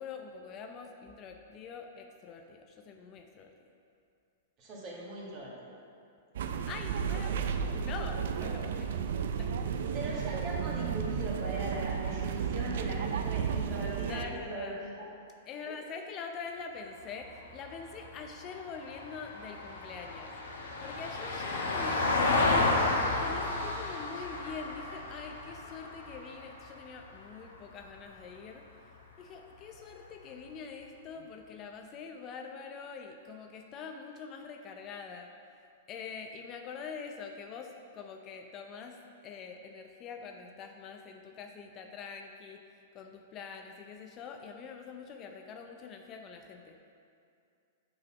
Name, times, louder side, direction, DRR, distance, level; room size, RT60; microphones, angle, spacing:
voice 1, 0.0-3.5 6.6-9.0 9.4-9.7 14.1-14.8 15.5-28.7 29.2-35.3 35.9-39.0 39.2-46.8, left 5 dB, 35° left, 4 dB, 0.5 m, -44 dB
voice 2, 4.6-5.8 9.9-15.1 15.7-15.8, right 1 dB, 35° right, -4 dB, 1.7 m, -39 dB
sound 1, 6.3-14.2, right 7 dB, 70° right, 0.4 m, -33 dB
Vehicle, 17.0-27.4 29.7-29.8, left 2 dB, 85° left, 1.1 m, -32 dB
6.5 x 4.1 x 6.0 m, 2.5 s
hypercardioid pair, 125°, 0 cm